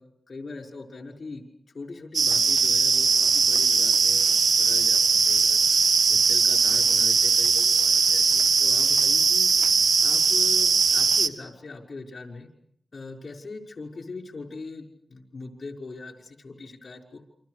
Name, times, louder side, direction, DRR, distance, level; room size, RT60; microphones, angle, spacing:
voice 1, 0.0-1.4 1.7-5.6 6.1-9.5 10.0-12.5 12.9-17.2, left 3 dB, 55° left, 3 dB, 5.8 m, -41 dB
sound 1, 2.1-11.3, right 5 dB, 80° right, 1.6 m, -20 dB
28.5 x 27.5 x 6.7 m, 0.70 s
wide cardioid pair, 70°, 0 cm